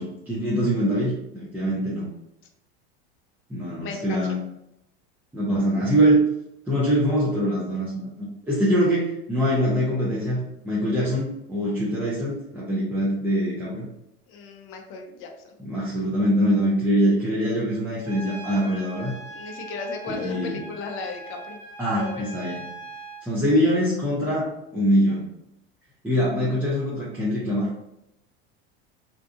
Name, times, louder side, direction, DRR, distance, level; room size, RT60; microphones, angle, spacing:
voice 1, 0.0-2.1 3.5-4.4 5.3-6.2 6.7-13.9 15.6-19.1 20.2-20.6 21.8-22.6 23.2-25.3 26.0-27.7, equal, 5° right, -8 dB, 0.7 m, -23 dB
voice 2, 3.8-4.4 14.3-15.5 19.3-21.6 21.9-22.3, left 4 dB, 40° left, 2 dB, 0.5 m, -35 dB
Trumpet, 18.1-23.3, right 2 dB, 60° right, 1.1 m, -40 dB
2.7 x 2.4 x 2.4 m, 0.85 s
hypercardioid pair, 95°, 31 cm